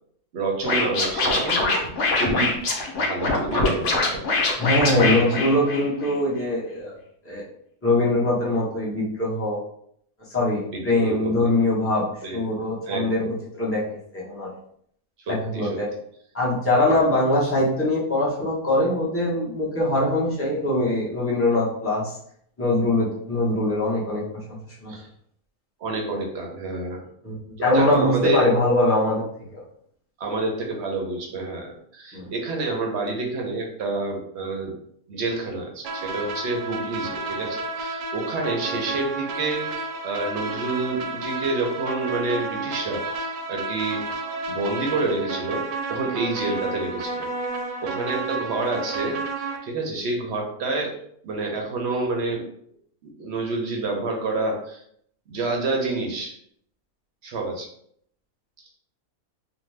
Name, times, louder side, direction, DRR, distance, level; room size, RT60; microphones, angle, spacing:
voice 1, 0.3-1.7 2.1-2.5 2.9-5.5 10.6-11.5 12.2-13.3 15.2-15.8 16.9-17.0 24.9-25.1 25.8-27.0 27.6-28.5 30.2-34.7 35.1-44.0 44.5-45.6 45.9-47.3 47.8-50.9 51.2-52.4 53.0-54.8 55.3-56.3 57.2-57.7, right 3 dB, 60° right, 1 dB, 0.8 m, -28 dB
Scratching (performance technique), 0.6-6.1, left 3 dB, 65° left, 0.9 m, -23 dB
voice 2, 4.6-6.9 7.2-7.4 7.8-9.6 10.3-12.0 12.3-14.5 15.3-15.9 16.3-22.1 22.6-24.2 24.5-24.9 27.2-27.4 27.6-29.2 29.5-29.6 32.1-32.3, left 1 dB, 15° left, -6 dB, 0.5 m, -22 dB
sound 1, 35.8-49.6, right 3 dB, 85° right, 1.1 m, -31 dB
2.6 x 2.2 x 3.2 m, 0.67 s
omnidirectional pair, 1.5 m